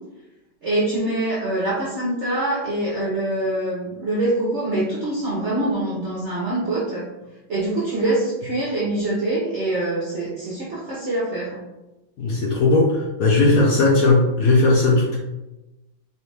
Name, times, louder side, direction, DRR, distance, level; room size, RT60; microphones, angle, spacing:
voice 1, 0.6-7.1 7.5-11.6, right 1 dB, 55° right, -7 dB, 0.7 m, -24 dB
voice 2, 12.2-15.2, left 2 dB, 65° left, -2 dB, 0.9 m, -17 dB
4.7 x 2.7 x 3.3 m, 1.0 s
omnidirectional pair, 2.3 m